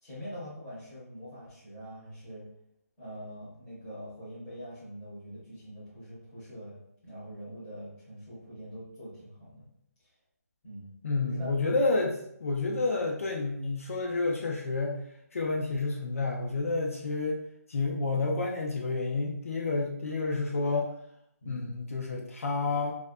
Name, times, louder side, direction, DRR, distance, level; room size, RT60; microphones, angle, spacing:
voice 1, 0.0-2.4 3.0-9.7 10.6-10.9 11.2-11.5 11.8-11.9 21.4-21.7, equal, 5° left, -11 dB, 0.7 m, -44 dB
voice 2, 11.0-15.0 15.3-17.4 17.7-20.9 21.5-23.0, left 3 dB, 55° left, 0 dB, 0.4 m, -29 dB
2.4 x 2.1 x 2.5 m, 0.73 s
hypercardioid pair, 175°, 9 cm